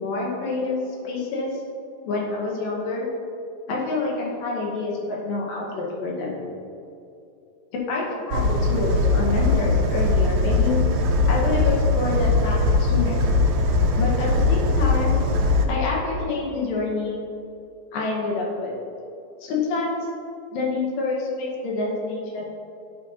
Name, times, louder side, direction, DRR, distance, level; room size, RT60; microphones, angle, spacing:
voice 1, 0.0-1.6 2.0-3.1 3.7-6.4 7.7-10.8 11.3-13.2 14.0-15.2 15.7-17.2 17.9-18.7 19.4-20.1 20.5-22.4, left 3 dB, 75° left, -3 dB, 2.7 m, -27 dB
sound 1, 8.3-15.7, left 2 dB, 85° right, 1.6 m, -20 dB
11.0 x 5.5 x 2.8 m, 2.6 s
omnidirectional pair, 4.1 m